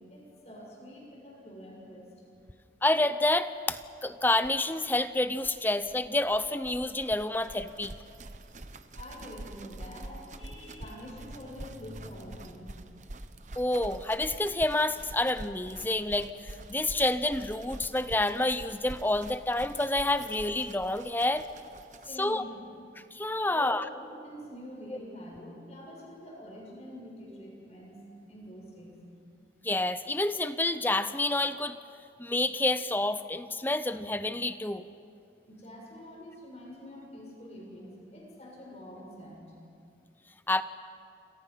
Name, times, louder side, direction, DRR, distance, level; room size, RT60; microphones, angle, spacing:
voice 1, 0.1-2.1 8.9-12.8 22.0-22.7 23.5-28.0 28.3-29.0 35.5-39.5, equal, 40° left, -2 dB, 7.2 m, -46 dB
voice 2, 2.8-7.9 13.6-21.4 22.2-22.4 23.1-23.8 29.6-31.8 32.2-34.8 40.5-40.6, left 2 dB, 10° left, 12 dB, 0.6 m, -28 dB
sound 1, 3.8-3.9 4.1-4.2 4.4-22.3, right 2 dB, 45° right, 1.0 m, -46 dB
28.0 x 27.0 x 5.8 m, 2.5 s
head